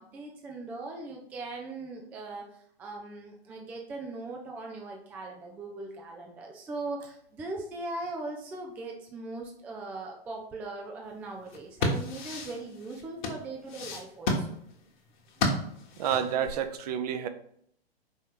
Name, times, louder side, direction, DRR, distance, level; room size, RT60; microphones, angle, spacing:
voice 1, 0.0-14.5, right 2 dB, 5° right, 0.4 m, -40 dB
sound 1, 11.4-16.5, left 2 dB, 50° left, 1.6 m, -32 dB
voice 2, 16.0-17.3, right 9 dB, 40° right, 0.7 m, -29 dB
5.5 x 4.2 x 4.9 m
figure-of-eight pair, 120°, 31 cm